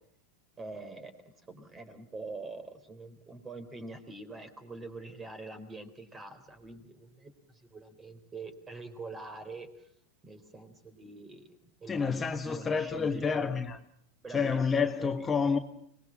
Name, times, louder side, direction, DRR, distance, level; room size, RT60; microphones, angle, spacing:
voice 1, 0.6-9.9 10.2-13.6 14.2-15.1, right 3 dB, 20° right, 3.7 m, -45 dB
voice 2, 11.9-13.8 14.3-15.6, left 5 dB, 20° left, 1.3 m, -29 dB
26.0 x 20.0 x 7.5 m
hypercardioid pair, 100°, 0 cm